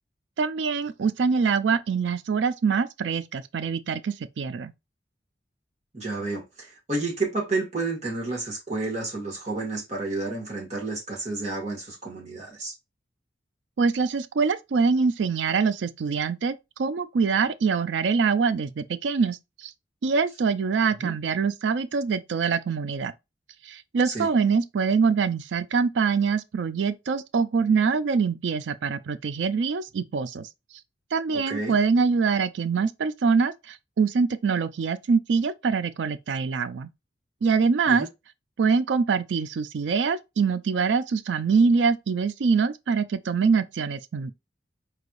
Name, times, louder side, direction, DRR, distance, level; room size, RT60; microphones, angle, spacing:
voice 1, 0.4-4.7 13.8-19.7 20.0-23.1 23.6-30.5 31.1-36.9 37.4-38.1 38.6-44.3, right 5 dB, 75° right, 0.4 m, -24 dB
voice 2, 5.9-12.7 21.0-21.1 24.0-24.3 31.3-31.7 37.9-38.1, right 3 dB, 40° right, 2.1 m, -30 dB
4.6 x 3.3 x 2.5 m
head